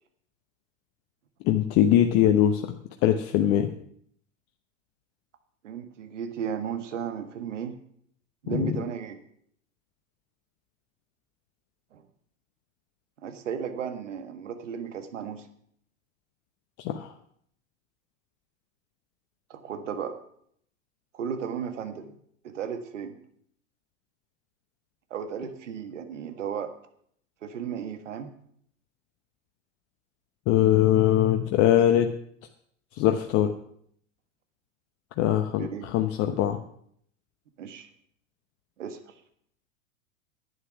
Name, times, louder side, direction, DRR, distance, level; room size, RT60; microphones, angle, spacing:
voice 1, 1.4-2.7 3.0-3.7 8.5-8.7 16.8-17.1 30.5-32.1 33.0-33.5 35.2-36.6, left 11 dB, 40° left, 6 dB, 0.9 m, -22 dB
voice 2, 5.6-7.7 8.4-9.2 11.9-12.0 13.2-15.4 19.5-20.1 21.1-22.1 22.4-23.2 25.1-26.7 27.4-28.3 35.3-35.9 37.6-37.9 38.8-39.1, right 7 dB, 70° right, 8 dB, 1.6 m, -34 dB
11.0 x 9.5 x 6.0 m, 0.67 s
figure-of-eight pair, 95°, 38 cm